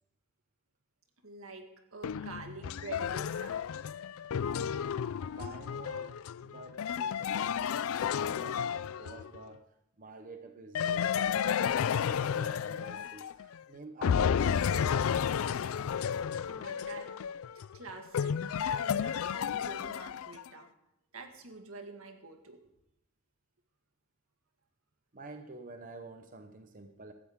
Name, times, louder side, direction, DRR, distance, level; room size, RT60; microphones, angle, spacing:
voice 1, 1.2-1.7 1.9-3.7 5.7-5.9 16.3-17.1 17.7-20.7 21.1-22.6, right 3 dB, 85° right, 5 dB, 1.8 m, -47 dB
sound 1, 2.0-9.4 10.8-13.6 14.0-20.5, left 8 dB, 85° left, 0.4 m, -32 dB
voice 2, 5.3-9.7 10.0-15.2 25.1-27.1, right 3 dB, 40° right, 6 dB, 0.8 m, -49 dB
16.0 x 13.0 x 3.6 m, 0.84 s
head